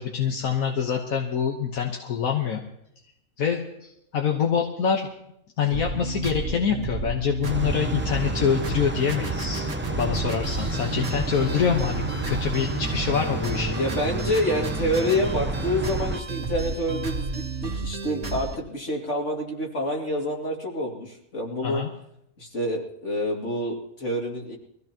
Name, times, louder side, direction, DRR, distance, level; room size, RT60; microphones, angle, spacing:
voice 1, 0.0-2.6 3.4-5.1 5.6-9.7 10.0-13.8 21.6-21.9, left 7 dB, 80° left, 1 dB, 1.7 m, -25 dB
sound 1, 5.7-18.6, right 3 dB, 60° right, 2.2 m, -32 dB
sound 2, 7.4-16.2, right 2 dB, 15° right, 0.4 m, -31 dB
voice 2, 13.8-21.8 22.4-24.6, left 1 dB, 55° left, -1 dB, 2.8 m, -27 dB
23.5 x 15.5 x 3.0 m, 0.75 s
omnidirectional pair, 1.5 m